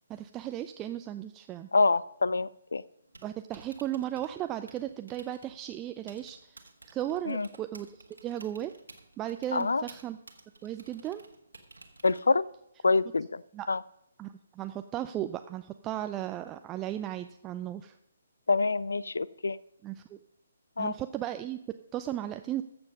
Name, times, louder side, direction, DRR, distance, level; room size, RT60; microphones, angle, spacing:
voice 1, 0.1-1.7 3.2-8.7 9.2-10.2 10.6-11.2 13.5-13.7 14.2-18.0 19.8-20.2 20.8-21.6 21.9-22.6, right 12 dB, 15° right, 9 dB, 0.3 m, -36 dB
voice 2, 1.7-2.8 7.3-7.5 9.5-9.8 12.0-12.5 12.8-13.4 13.7-13.8 18.5-19.6 20.8-20.9, left 3 dB, 65° left, 21 dB, 0.3 m, -26 dB
Typing, 3.0-12.6, right 3 dB, 70° right, 1.5 m, -55 dB
14.5 x 7.1 x 5.3 m, 0.77 s
figure-of-eight pair, 135°, 0 cm